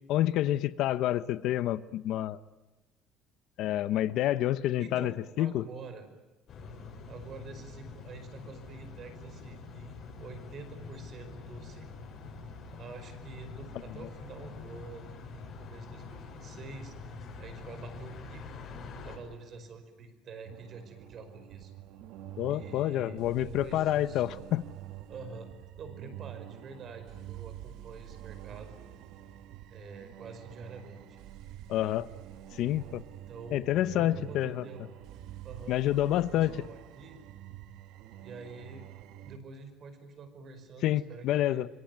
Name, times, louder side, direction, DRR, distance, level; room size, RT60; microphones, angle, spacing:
voice 1, 0.1-2.4 3.6-5.6 22.4-24.7 31.7-32.1 32.5-33.0 33.5-34.6 35.7-36.6 40.8-41.7, left 13 dB, 60° left, 15 dB, 0.8 m, -28 dB
voice 2, 4.8-6.1 7.1-11.9 12.7-17.0 17.4-18.4 19.0-21.7 22.5-24.4 25.1-25.5 25.8-29.0 29.7-31.2 33.1-34.9 35.4-37.2 38.2-38.9 39.2-41.7, right 4 dB, 35° right, 9 dB, 5.1 m, -47 dB
sound 1, 6.5-19.2, left 4 dB, 40° left, 7.3 m, -45 dB
sound 2, 20.4-39.4, right 12 dB, 65° right, 1.5 m, -47 dB
26.0 x 23.5 x 9.4 m, 1.1 s
cardioid pair, 155°, 0 cm